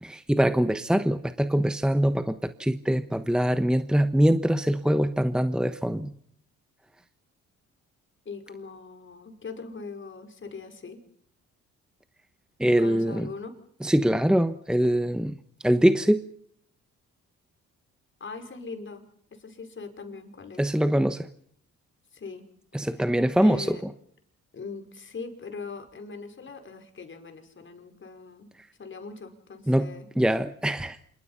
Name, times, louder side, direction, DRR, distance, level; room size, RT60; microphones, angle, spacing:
voice 1, 0.0-6.1 12.6-13.3 13.8-15.4 15.6-16.2 20.6-21.3 22.7-23.8 29.7-29.9 30.2-31.0, equal, 5° right, 10 dB, 1.2 m, -23 dB
voice 2, 8.3-11.0 12.8-13.6 18.2-19.0 19.3-20.6 22.1-22.4 22.9-23.1 23.4-23.8 24.5-28.5 28.8-30.1, left 4 dB, 40° left, 6 dB, 5.6 m, -40 dB
27.5 x 24.0 x 5.7 m, 0.63 s
cardioid pair, 90°, 30 cm